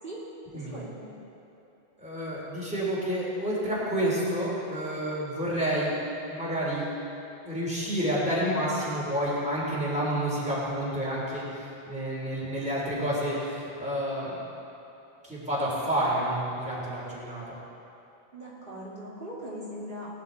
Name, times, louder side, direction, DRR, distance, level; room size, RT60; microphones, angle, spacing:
voice 1, 0.5-1.1 18.3-20.1, equal, 55° right, -8 dB, 2.7 m, -40 dB
voice 2, 2.0-5.9 6.3-6.9 7.4-14.4 15.2-17.6, equal, 5° right, -7 dB, 3.4 m, -29 dB
19.5 x 10.5 x 4.0 m, 3.0 s
omnidirectional pair, 1.0 m